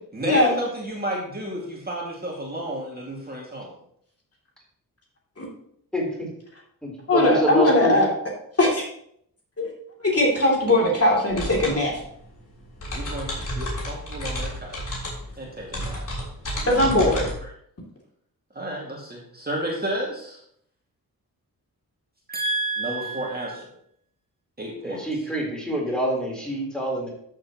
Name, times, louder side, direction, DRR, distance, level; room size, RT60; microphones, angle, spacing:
voice 1, 0.1-3.7 12.9-14.8 15.4-16.1 16.5-17.1 18.5-20.4 22.3-23.7 24.6-25.0, right 1 dB, 25° right, -3 dB, 2.2 m, -31 dB
voice 2, 5.9-6.3 6.8-8.0 24.8-27.1, right 1 dB, ahead, -3 dB, 3.8 m, -26 dB
voice 3, 7.1-8.1 8.6-8.8 9.6-9.7 10.0-12.0 16.7-17.3, left 1 dB, 40° left, -2 dB, 2.9 m, -20 dB
sound 1, 11.3-17.3, equal, 55° left, 3.7 m, -32 dB
12.5 x 7.3 x 3.0 m, 0.68 s
wide cardioid pair, 105°, 38 cm